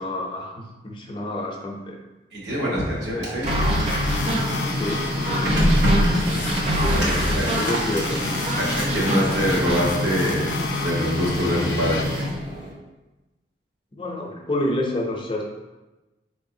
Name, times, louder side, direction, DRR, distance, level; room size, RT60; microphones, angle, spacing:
voice 1, 0.0-2.0 4.7-5.7 6.7-8.5 13.9-15.4, left 1 dB, 30° left, 0 dB, 0.5 m, -29 dB
voice 2, 2.3-3.5 6.9-7.4 8.6-12.1, equal, 70° right, -5 dB, 1.2 m, -25 dB
Printer, 2.9-12.7, equal, 90° right, 1.0 m, -25 dB
sound 1, 3.5-9.9, equal, 35° right, 0.5 m, -26 dB
sound 2, 3.9-12.0, left 6 dB, 90° left, 0.4 m, -34 dB
4.4 x 3.2 x 2.7 m, 1.1 s
head